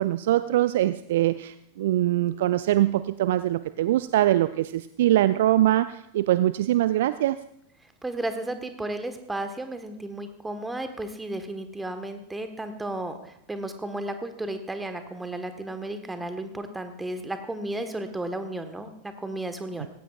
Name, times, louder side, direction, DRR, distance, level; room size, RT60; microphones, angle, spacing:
voice 1, 0.0-7.4, right 14 dB, 55° right, 14 dB, 0.4 m, -23 dB
voice 2, 8.0-19.9, right 1 dB, 10° right, 7 dB, 1.4 m, -33 dB
18.5 x 16.5 x 2.5 m, 0.78 s
figure-of-eight pair, 90°, 0 cm